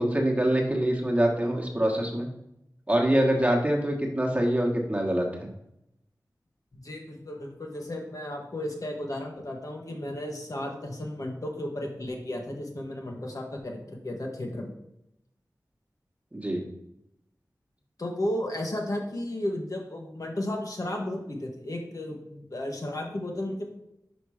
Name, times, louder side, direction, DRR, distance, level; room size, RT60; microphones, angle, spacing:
voice 1, 0.0-2.3 2.9-5.5 16.3-16.6, right 1 dB, 20° right, 0 dB, 1.4 m, -25 dB
voice 2, 6.7-14.7 18.0-23.7, left 1 dB, 55° left, 0 dB, 1.3 m, -34 dB
5.2 x 5.0 x 4.9 m, 0.83 s
wide cardioid pair, 55°, 7 cm